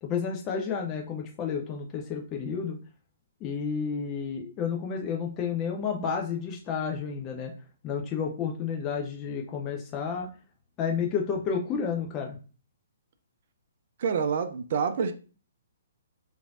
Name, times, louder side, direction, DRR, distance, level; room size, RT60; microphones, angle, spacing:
voice 1, 0.0-2.8 3.4-7.5 7.8-10.3 10.8-12.4, left 6 dB, 25° left, 0.4 m, -31 dB
voice 2, 14.0-15.1, right 6 dB, 45° right, 0.4 m, -27 dB
3.1 x 2.5 x 2.3 m
figure-of-eight pair, 125°, 0 cm